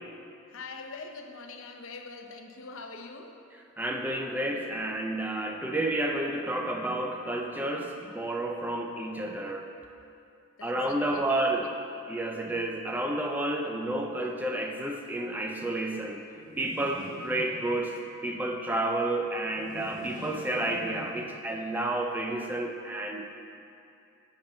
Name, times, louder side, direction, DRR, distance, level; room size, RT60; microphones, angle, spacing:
voice 1, 0.5-3.5 10.6-11.7, left 3 dB, 65° left, 4 dB, 0.7 m, -44 dB
voice 2, 3.8-9.7 10.6-11.7 12.1-16.2 16.6-18.0 18.2-23.2, right 1 dB, 10° right, 1 dB, 0.5 m, -30 dB
sound 1, 16.3-18.1 19.4-21.6, left 1 dB, 35° left, 1.6 m, -45 dB
11.0 x 7.1 x 3.9 m, 2.6 s
head